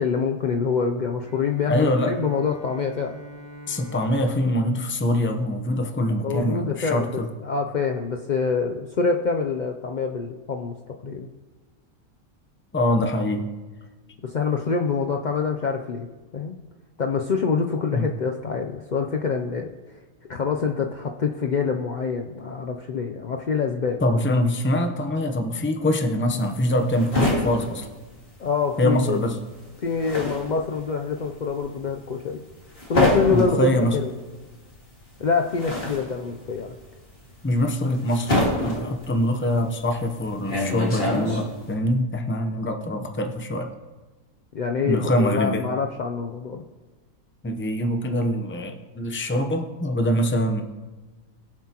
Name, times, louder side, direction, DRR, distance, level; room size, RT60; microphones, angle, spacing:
voice 1, 0.0-3.2 6.2-11.3 14.2-16.1 16.3-16.6 17.0-19.7 20.3-24.0 28.4-29.2 29.8-32.4 32.9-34.1 35.2-36.7 44.5-46.6, left 5 dB, 75° left, 3 dB, 0.4 m, -26 dB
Bowed string instrument, 1.2-5.9, equal, 60° left, 2.9 m, -45 dB
voice 2, 1.7-2.1 3.7-7.3 12.7-13.5 17.9-18.1 24.0-27.9 28.8-29.4 33.3-34.0 37.4-43.7 44.9-45.7 47.4-50.6, left 1 dB, 15° left, 5 dB, 0.5 m, -24 dB
sound 1, 26.3-28.8 29.1-41.7, left 1 dB, 40° left, 2.3 m, -27 dB
22.0 x 7.4 x 2.9 m, 1.3 s
omnidirectional pair, 1.5 m